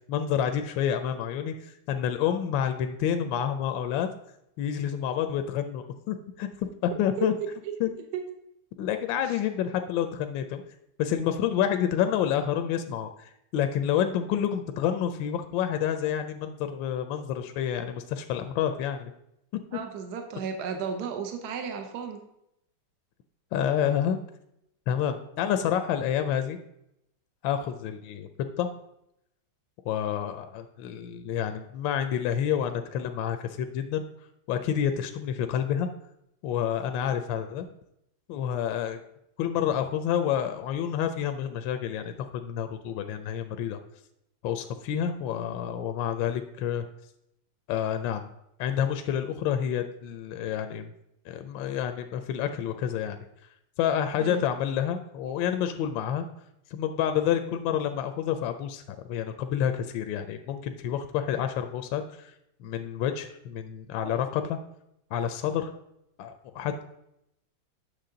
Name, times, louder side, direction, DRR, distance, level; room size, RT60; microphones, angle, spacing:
voice 1, 0.1-4.1 4.6-6.5 6.8-7.3 7.8-7.9 8.8-10.6 11.0-19.1 23.5-24.2 24.9-26.6 27.4-28.3 28.6-28.7 29.9-34.0 34.5-35.9 36.4-37.7 38.3-39.0 39.4-43.8 44.4-46.9 47.7-48.3 48.6-50.9 51.3-53.2 53.8-56.3 56.7-62.3 62.6-64.6 65.1-65.7 66.2-66.8, left 9 dB, 75° left, 8 dB, 1.2 m, -28 dB
voice 2, 7.2-7.5 8.1-8.2 9.3-9.4 19.7-22.2 45.3-45.5 54.2-54.5 64.0-64.2, right 6 dB, 60° right, 5 dB, 1.3 m, -34 dB
8.3 x 6.0 x 3.8 m, 0.80 s
omnidirectional pair, 2.2 m